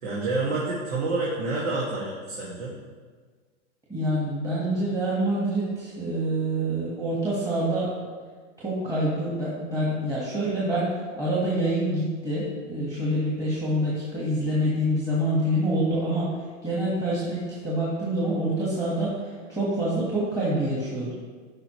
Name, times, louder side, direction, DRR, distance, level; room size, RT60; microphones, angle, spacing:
voice 1, 0.0-2.8, right 3 dB, 75° right, -5 dB, 2.1 m, -28 dB
voice 2, 3.9-7.9 8.6-16.3 16.6-21.1, right 1 dB, 10° right, -8 dB, 1.5 m, -26 dB
12.5 x 5.2 x 3.1 m, 1.5 s
hypercardioid pair, 145°, 37 cm